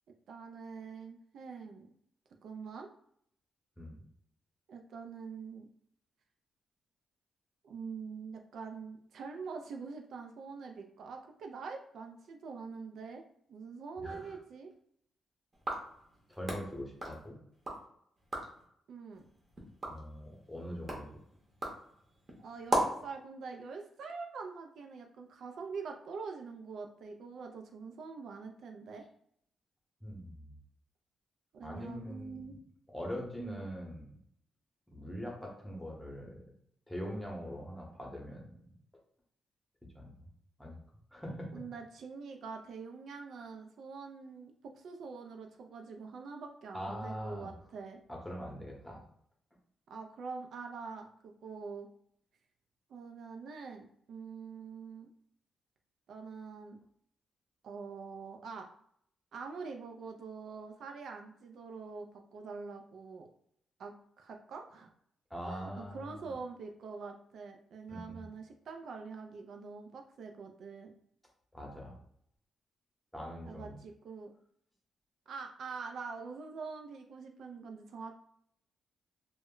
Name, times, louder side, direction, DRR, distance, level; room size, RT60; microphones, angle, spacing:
voice 1, 0.3-1.9 2.4-2.9 4.7-5.7 7.6-13.2 13.5-14.7 18.9-19.2 22.4-29.1 31.5-32.6 33.4-33.6 41.3-48.0 49.9-51.9 52.9-55.1 56.1-56.8 57.6-58.7 59.3-63.3 63.8-64.9 65.5-70.9 73.4-74.3 75.3-78.2, right 5 dB, 70° right, 3 dB, 0.3 m, -45 dB
voice 2, 14.0-14.3 16.3-17.4 19.9-21.1 30.0-30.5 31.6-32.5 32.9-34.1 34.9-36.4 36.9-38.4 39.9-40.3 40.6-40.8 41.1-41.6 46.7-47.5 48.1-49.0 65.3-66.3 67.9-68.3 71.5-72.0 73.1-73.7, equal, 5° left, -1 dB, 0.8 m, -42 dB
sound 1, 15.5-17.8 18.2-18.6 19.1-23.1, right 1 dB, 30° right, 0.8 m, -38 dB
2.1 x 2.0 x 3.7 m, 0.69 s
cardioid pair, 105°, 0 cm